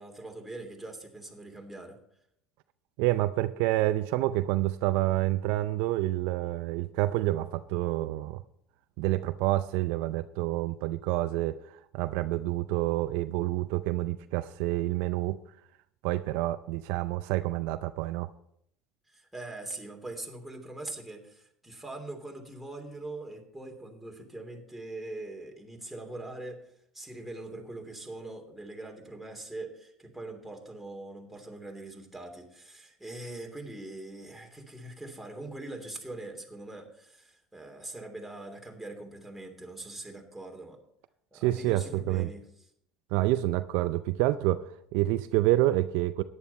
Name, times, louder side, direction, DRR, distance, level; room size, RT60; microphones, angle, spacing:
voice 1, 0.0-2.0 19.1-40.8 41.3-42.4, right 2 dB, 5° right, 1 dB, 3.1 m, -42 dB
voice 2, 3.0-8.4 9.0-15.4 16.0-18.3 41.3-42.3 43.1-46.2, right 16 dB, 70° right, 12 dB, 0.5 m, -28 dB
13.5 x 10.0 x 4.2 m, 0.73 s
hypercardioid pair, 80°, 3 cm